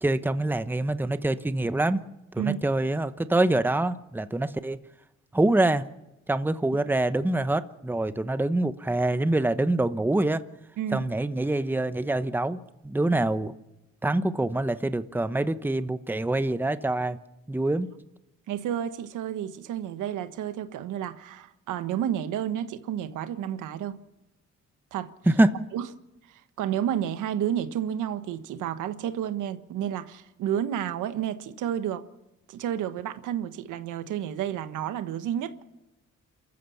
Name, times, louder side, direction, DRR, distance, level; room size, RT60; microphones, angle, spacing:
voice 1, 0.0-2.0 2.3-4.8 5.3-5.9 6.3-10.4 10.9-13.5 14.0-17.2 17.5-17.9 25.3-25.5, right 2 dB, 5° right, 0.9 m, -25 dB
voice 2, 18.5-24.0 24.9-25.1 25.7-25.8 26.6-32.0 32.5-35.6, right 10 dB, 85° right, 1.4 m, -31 dB
28.0 x 14.5 x 7.2 m
cardioid pair, 90°, 30 cm